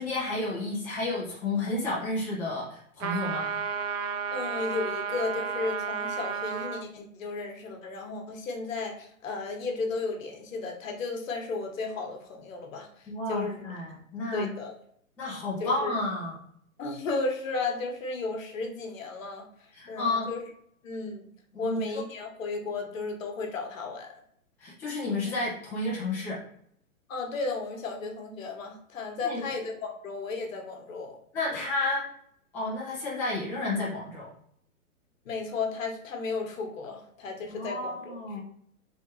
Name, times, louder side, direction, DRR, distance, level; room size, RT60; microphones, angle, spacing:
voice 1, 0.0-3.5 13.1-14.5 15.2-16.3 19.7-20.3 21.5-22.0 24.6-26.4 29.2-29.4 31.3-32.0 32.5-34.3 37.5-38.4, left 2 dB, 5° left, -7 dB, 0.5 m, -31 dB
sound 1, 3.0-6.9, right 6 dB, 65° right, 0.6 m, -32 dB
voice 2, 4.3-13.6 14.3-14.8 15.6-16.0 16.8-20.4 20.8-21.2 21.6-24.1 27.1-31.2 31.5-31.6 35.2-38.4, left 3 dB, 65° left, 3 dB, 1.2 m, -34 dB
3.4 x 3.3 x 2.8 m, 0.66 s
hypercardioid pair, 140°, 42 cm